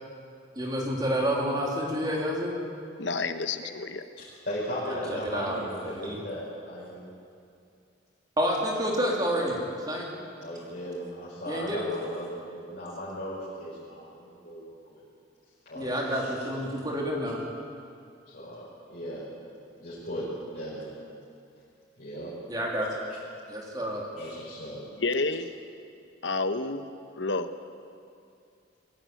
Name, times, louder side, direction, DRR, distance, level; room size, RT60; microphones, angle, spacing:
voice 1, 0.5-2.5 4.9-5.6 5.9-6.2 8.4-9.6 9.9-10.0 11.5-11.8 15.7-17.4 22.5-22.9 23.5-24.0, equal, 20° right, -2 dB, 3.1 m, -29 dB
voice 2, 3.0-4.1 25.0-25.5 26.2-26.8 27.2-27.5, left 3 dB, 70° left, 9 dB, 1.1 m, -29 dB
voice 3, 4.2-7.0 10.4-15.0 15.7-16.5 18.3-19.2 19.8-20.3 20.5-20.9 22.0-22.3 24.2-24.8, equal, 50° left, -9 dB, 5.7 m, -37 dB
22.0 x 16.0 x 9.2 m, 2.4 s
head